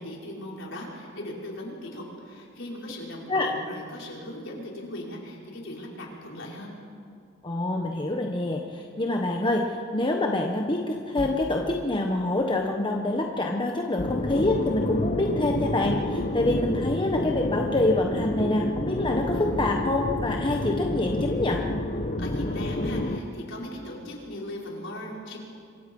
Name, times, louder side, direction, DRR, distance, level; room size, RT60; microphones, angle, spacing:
voice 1, 0.0-6.7 22.2-25.4, left 1 dB, 65° left, -2 dB, 5.1 m, -38 dB
voice 2, 7.4-21.6, left 2 dB, 25° left, 1 dB, 1.3 m, -26 dB
sound 1, 11.2-15.5, equal, 15° right, 2.0 m, -46 dB
sound 2, 14.0-23.2, left 1 dB, 40° left, 1.0 m, -29 dB
26.5 x 24.0 x 5.5 m, 2.3 s
head